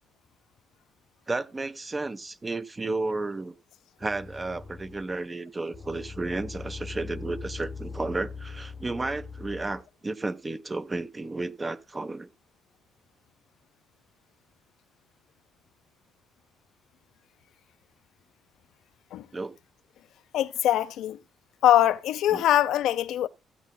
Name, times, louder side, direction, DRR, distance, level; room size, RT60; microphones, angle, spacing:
voice 1, 1.3-3.5 4.0-12.3 19.3-19.6 22.3-22.4, right 3 dB, 25° right, 0.9 m, -32 dB
sound 1, 4.0-5.2 5.7-9.8, left 5 dB, 35° left, 0.8 m, -41 dB
voice 2, 20.3-21.2 21.6-23.3, left 12 dB, 85° left, 0.6 m, -22 dB
15.5 x 8.4 x 2.2 m
cardioid pair, 90°, 0 cm